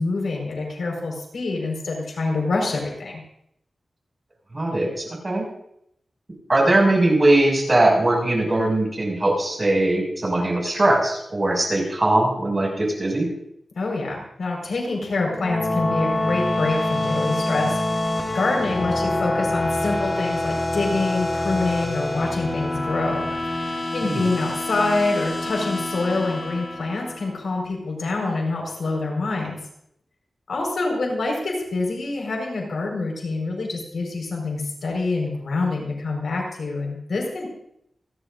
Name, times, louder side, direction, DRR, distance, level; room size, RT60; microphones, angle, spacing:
voice 1, 0.0-3.2 13.7-23.3 23.6-29.6 30.5-37.5, left 3 dB, 85° left, -1 dB, 4.8 m, -26 dB
voice 2, 4.5-5.5 6.5-13.3 24.0-24.2, right 1 dB, 30° right, -1 dB, 6.2 m, -20 dB
sound 1, 15.1-27.5, left 1 dB, 30° left, 2.5 m, -26 dB
28.5 x 11.5 x 2.6 m, 0.75 s
wide cardioid pair, 105°, 0 cm